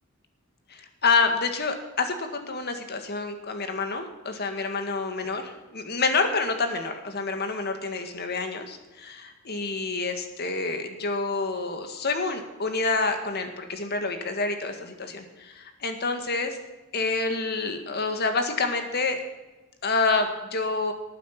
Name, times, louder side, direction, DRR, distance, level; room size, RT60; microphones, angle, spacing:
voice 1, 0.7-5.4 5.7-16.6 16.9-19.2 19.8-20.9, left 4 dB, 50° left, 6 dB, 1.9 m, -28 dB
19.0 x 9.2 x 6.0 m, 1.1 s
head